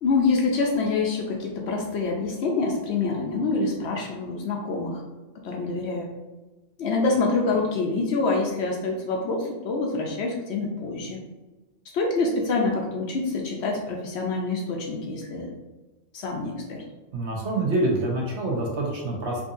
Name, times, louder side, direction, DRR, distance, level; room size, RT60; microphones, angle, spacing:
voice 1, 0.0-5.0 5.4-6.1 6.8-11.2 11.9-15.5 16.1-16.8, left 3 dB, 65° left, 0 dB, 0.8 m, -26 dB
voice 2, 17.1-19.4, right 2 dB, 65° right, -1 dB, 1.0 m, -26 dB
3.7 x 2.7 x 2.6 m, 1.2 s
omnidirectional pair, 1.3 m